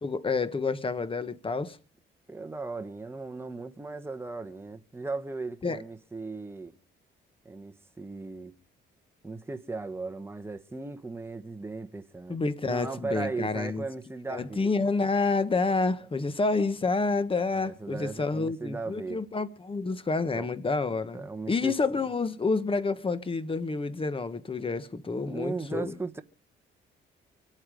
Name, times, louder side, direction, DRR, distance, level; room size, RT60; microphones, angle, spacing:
voice 1, 0.0-1.8 5.6-5.8 12.3-13.8 14.3-25.9, left 3 dB, 25° left, 1.4 m, -29 dB
voice 2, 2.3-6.8 7.4-8.5 9.2-12.4 12.6-14.7 17.5-19.2 20.3-20.5 21.1-21.7 25.2-26.2, right 3 dB, 10° right, 1.2 m, -37 dB
25.5 x 8.9 x 5.1 m
cardioid pair, 90°, 20 cm